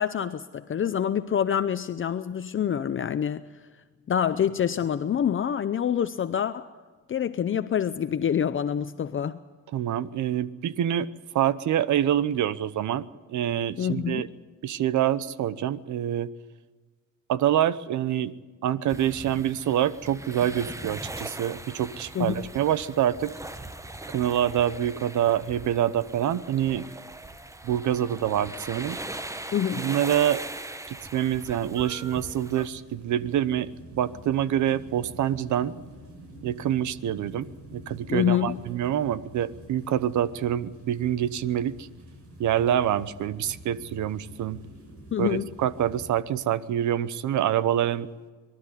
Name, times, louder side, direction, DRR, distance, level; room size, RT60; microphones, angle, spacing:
voice 1, 0.0-3.4 4.1-6.7 7.1-9.4 13.8-14.2 22.1-22.4 29.5-29.9 38.1-38.6 45.1-45.5, left 9 dB, 40° left, 11 dB, 0.7 m, -26 dB
voice 2, 9.7-11.1 11.3-13.0 13.3-14.3 14.6-16.3 17.3-18.3 18.6-23.3 24.1-26.9 27.6-29.0 29.8-30.4 30.9-35.7 36.4-41.9 42.4-44.6 45.2-48.1, right 11 dB, 75° right, 17 dB, 1.0 m, -26 dB
sound 1, 18.9-32.7, right 2 dB, 10° right, 1.0 m, -40 dB
sound 2, 27.8-46.1, right 1 dB, 50° right, 7.0 m, -48 dB
23.0 x 12.5 x 9.8 m, 1.4 s
cardioid pair, 90°, 30 cm